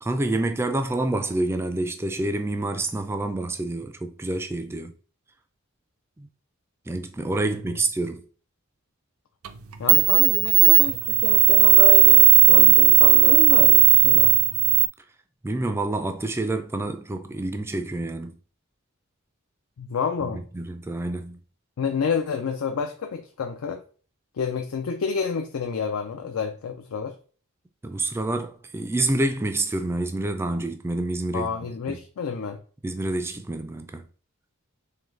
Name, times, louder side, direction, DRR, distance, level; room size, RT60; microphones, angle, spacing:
voice 1, 0.0-4.9 6.2-6.3 6.9-8.3 15.4-18.4 20.3-21.4 27.8-32.0 32.8-34.1, right 2 dB, 10° right, 0.3 m, -28 dB
sound 1, 9.5-9.6 9.9-14.9, right 17 dB, 80° right, 0.4 m, -15 dB
voice 2, 9.8-14.3 19.8-20.4 21.8-23.8 24.4-27.1 31.3-32.6, left 5 dB, 80° left, 0.4 m, -29 dB
3.8 x 3.1 x 3.2 m
head